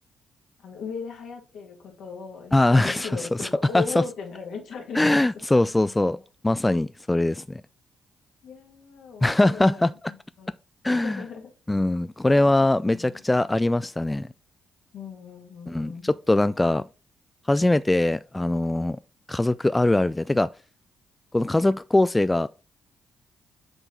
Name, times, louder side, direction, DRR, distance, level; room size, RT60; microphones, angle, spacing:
voice 1, 0.6-5.1 8.4-10.5 10.9-11.5 12.8-13.2 14.9-16.1, left 6 dB, 70° left, 2.0 m, -38 dB
voice 2, 2.5-3.5 3.7-4.0 4.9-6.2 6.4-7.6 9.2-9.9 10.8-11.2 11.7-14.3 15.7-16.8 17.5-19.0 19.3-20.5 21.3-22.5, left 2 dB, 15° left, 0.3 m, -22 dB
8.0 x 4.0 x 3.8 m
hypercardioid pair, 50°, 0 cm